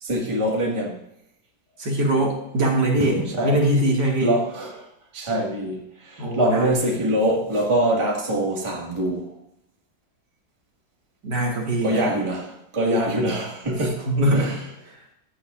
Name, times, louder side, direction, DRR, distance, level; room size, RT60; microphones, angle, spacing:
voice 1, 0.0-1.0 3.3-3.6 4.2-4.8 5.1-9.3 11.8-14.1 14.4-14.5, right 1 dB, 15° right, -2 dB, 1.9 m, -24 dB
voice 2, 1.8-4.3 6.2-7.0 11.2-12.2 13.8-14.6 14.9-15.0, right 1 dB, 65° right, -1 dB, 2.7 m, -23 dB
14.5 x 10.5 x 2.5 m, 0.81 s
omnidirectional pair, 2.0 m